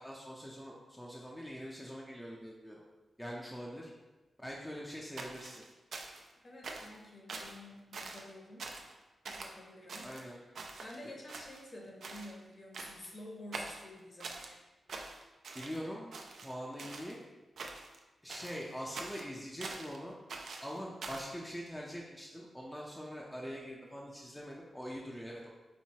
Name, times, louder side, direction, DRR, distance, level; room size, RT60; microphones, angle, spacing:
voice 1, 0.0-2.8 3.2-3.9 4.4-5.6 10.0-10.4 11.0-11.1 15.5-17.2 18.2-20.1 20.6-25.5, equal, 5° left, -3 dB, 0.5 m, -43 dB
sound 1, 5.2-6.3 6.6-7.0 7.3-7.6 7.9-8.3 8.6-8.9 9.2-9.5 9.9-11.0 11.3-11.8 12.0-12.3 12.7-13.1 13.5-14.5 14.9-15.8 16.1-17.2 17.6-18.0 18.3-20.0 20.3-21.3, right 3 dB, 75° right, 0.5 m, -45 dB
voice 2, 6.4-8.7 9.2-10.4 10.8-14.6, left 1 dB, 40° left, -1 dB, 0.9 m, -50 dB
4.5 x 4.0 x 2.8 m, 1.2 s
wide cardioid pair, 135°, 0 cm